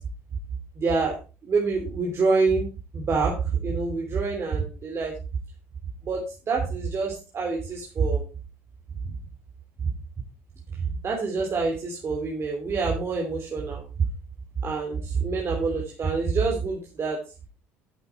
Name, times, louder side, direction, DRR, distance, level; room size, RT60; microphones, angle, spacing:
voice 1, 0.8-1.2 1.4-2.7 2.9-5.1 6.0-8.2 9.0-9.1 11.0-13.8 14.6-17.2, right 4 dB, 40° right, 0 dB, 3.0 m, -26 dB
10.0 x 8.0 x 4.5 m, 0.32 s
supercardioid pair, 75°, 7 cm